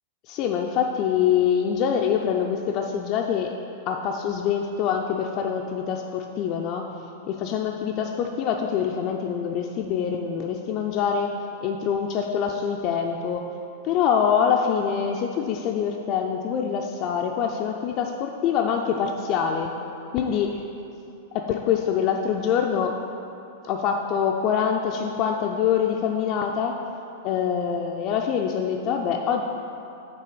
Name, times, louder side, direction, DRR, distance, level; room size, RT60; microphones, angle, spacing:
voice 1, 0.3-3.5 3.9-6.9 7.3-11.3 11.6-13.4 13.8-19.7 20.1-20.6 21.3-23.0 23.6-26.7 27.2-29.4, left 7 dB, 45° left, 1 dB, 0.4 m, -25 dB
8.8 x 3.0 x 4.8 m, 2.8 s
figure-of-eight pair, 95°, 0 cm